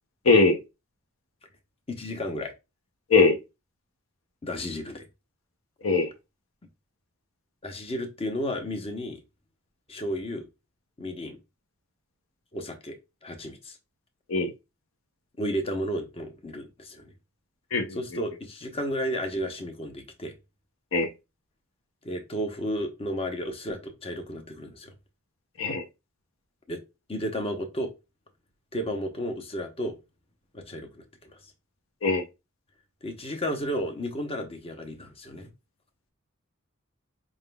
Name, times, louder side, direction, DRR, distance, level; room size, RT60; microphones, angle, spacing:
voice 1, 0.3-0.6 3.1-3.4 5.8-6.1 14.3-14.5 17.7-18.0 20.9-21.1 25.6-25.8 32.0-32.2, left 3 dB, 75° left, 0.7 m, -20 dB
voice 2, 1.9-2.5 4.4-5.0 7.6-9.2 9.9-10.4 11.0-11.4 12.5-13.8 15.4-17.1 17.9-20.3 22.0-24.9 26.7-26.8 27.1-27.9 28.7-30.0 30.5-31.4 33.0-35.5, equal, 30° left, 0.8 m, -33 dB
5.0 x 3.6 x 2.2 m
head